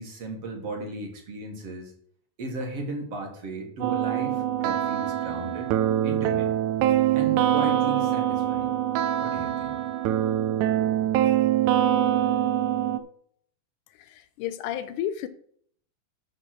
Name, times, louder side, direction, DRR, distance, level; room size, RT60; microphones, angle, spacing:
voice 1, 0.0-1.9 2.4-5.7 6.0-6.5 7.1-8.7 9.2-9.8, right 2 dB, 50° right, 2 dB, 2.5 m, -36 dB
sound 1, 3.8-13.0, right 11 dB, 80° right, 1.9 m, -24 dB
voice 2, 14.4-15.3, left 11 dB, 80° left, 12 dB, 2.1 m, -30 dB
12.0 x 4.1 x 6.0 m, 0.62 s
omnidirectional pair, 3.8 m